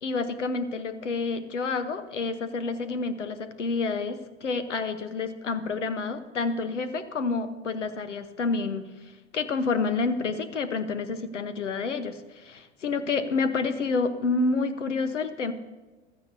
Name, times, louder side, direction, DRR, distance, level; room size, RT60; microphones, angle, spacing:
voice 1, 0.0-15.5, left 4 dB, 85° left, 11 dB, 1.1 m, -29 dB
15.5 x 12.5 x 2.7 m, 1.3 s
hypercardioid pair, 90°, 35 cm